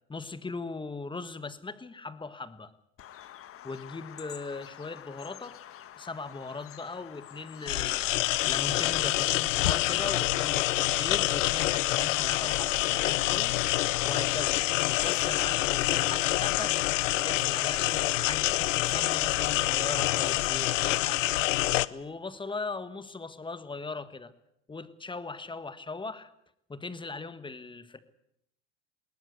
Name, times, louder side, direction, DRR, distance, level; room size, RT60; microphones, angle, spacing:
voice 1, 0.1-2.7 3.6-5.6 6.0-8.1 8.5-13.5 14.0-14.6 15.0-16.8 17.2-21.2 21.9-24.3 24.7-26.3 26.7-28.0, left 3 dB, 15° left, 12 dB, 1.6 m, -39 dB
Bird vocalization bird call bird song, 3.0-17.1, left 11 dB, 35° left, 1.3 m, -46 dB
sound 1, 7.7-21.9, left 16 dB, 85° left, 0.8 m, -27 dB
21.0 x 18.5 x 8.2 m, 0.77 s
hypercardioid pair, 100°, 37 cm